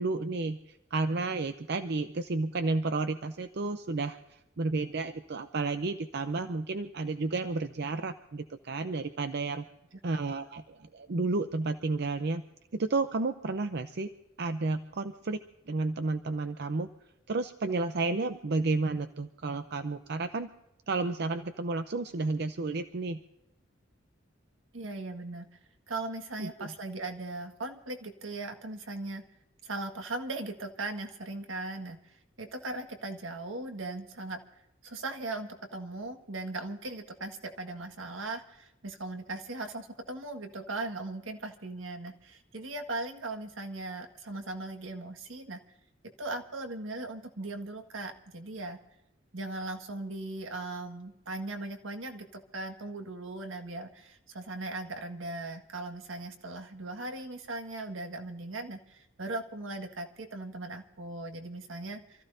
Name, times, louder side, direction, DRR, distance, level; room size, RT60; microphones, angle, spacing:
voice 1, 0.0-9.6 10.0-12.4 12.7-14.1 14.4-15.4 15.7-16.9 17.3-20.5 20.9-23.2 26.4-26.7, right 3 dB, 60° right, 9 dB, 0.7 m, -32 dB
voice 2, 24.7-25.6 25.9-29.2 29.6-34.4 34.8-45.6 46.2-48.8 49.3-62.2, right 2 dB, 85° right, 5 dB, 1.7 m, -38 dB
28.0 x 14.5 x 2.7 m, 0.91 s
head